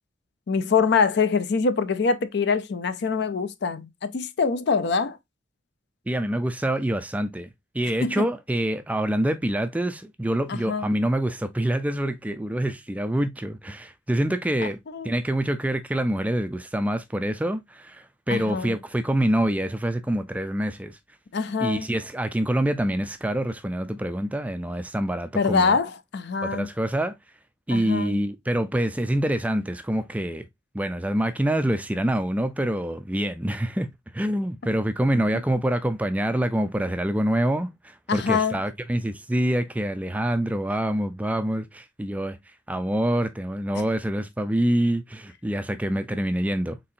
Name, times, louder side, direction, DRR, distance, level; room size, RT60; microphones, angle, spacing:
voice 1, 0.5-5.2 8.0-8.3 10.5-10.9 14.9-15.1 18.3-18.8 21.3-21.9 25.3-26.7 27.7-28.2 38.1-38.6, left 5 dB, 55° left, 0.5 m, -24 dB
voice 2, 6.1-7.5 7.7-14.8 15.0-21.0 21.6-25.8 26.4-27.1 27.7-30.5 30.7-42.4 42.7-46.8, right 1 dB, 5° right, 0.3 m, -26 dB
4.1 x 3.7 x 2.7 m
head